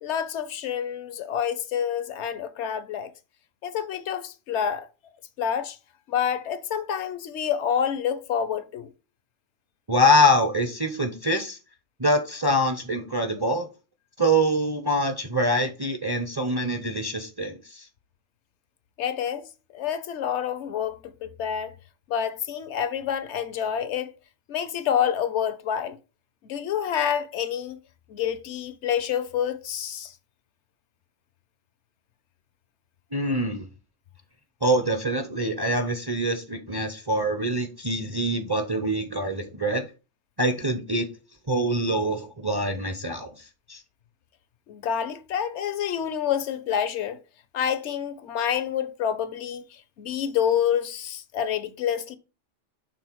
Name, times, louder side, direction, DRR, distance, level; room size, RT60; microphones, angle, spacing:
voice 1, 0.0-3.1 3.6-4.9 5.4-5.8 6.1-8.9 19.0-19.5 19.7-21.7 22.1-24.1 24.5-26.0 26.4-27.8 28.1-30.1 44.7-47.2 47.5-52.2, left 8 dB, 75° left, 0.9 m, -28 dB
voice 2, 9.9-11.6 12.0-13.7 14.2-17.9 33.1-33.6 34.6-39.8 40.4-41.1 41.5-43.3 43.7-43.8, equal, 30° right, 0.5 m, -24 dB
6.1 x 3.7 x 4.5 m
omnidirectional pair, 1.2 m